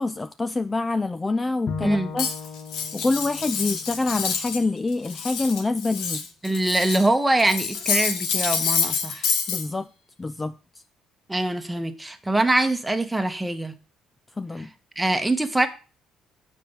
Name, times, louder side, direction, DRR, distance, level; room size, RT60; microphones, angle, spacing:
voice 1, 0.0-2.3 2.9-6.2 9.5-9.9 10.2-10.6 14.4-14.7, left 3 dB, 20° left, 0.4 m, -26 dB
Bowed string instrument, 1.7-4.9, left 5 dB, 55° left, 1.0 m, -37 dB
Cutlery silverware, 2.2-4.6 4.9-7.1 7.4-9.6, left 6 dB, 85° left, 1.5 m, -27 dB
voice 2, 6.4-9.3 11.3-13.7 15.0-15.7, right 2 dB, 10° right, 1.3 m, -23 dB
7.4 x 5.5 x 7.3 m
cardioid pair, 80°, 0 cm